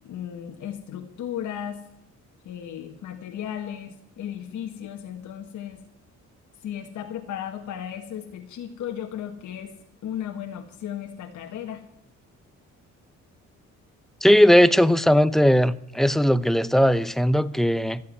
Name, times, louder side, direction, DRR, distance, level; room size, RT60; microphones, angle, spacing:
voice 1, 0.0-1.8 2.4-5.8 6.6-9.7 10.0-11.8, left 10 dB, 75° left, 1.7 m, -35 dB
voice 2, 14.2-18.0, equal, ahead, 0.7 m, -18 dB
13.0 x 8.5 x 9.6 m
cardioid pair, 90°, 30 cm